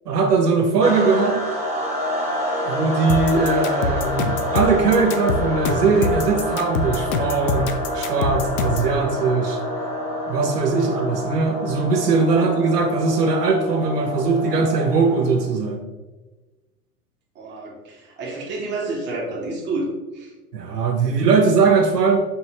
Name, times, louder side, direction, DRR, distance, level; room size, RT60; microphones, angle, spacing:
voice 1, 0.1-1.4 2.6-9.6 10.3-15.8 20.5-22.2, right 4 dB, 80° right, 3 dB, 0.7 m, -20 dB
sound 1, 0.8-15.6, equal, 15° left, 1.1 m, -27 dB
sound 2, 3.1-8.9, left 4 dB, 65° left, 0.6 m, -25 dB
voice 2, 17.3-20.3, right 2 dB, 25° right, -1 dB, 0.9 m, -29 dB
4.5 x 3.1 x 2.8 m, 1.2 s
figure-of-eight pair, 95°, 47 cm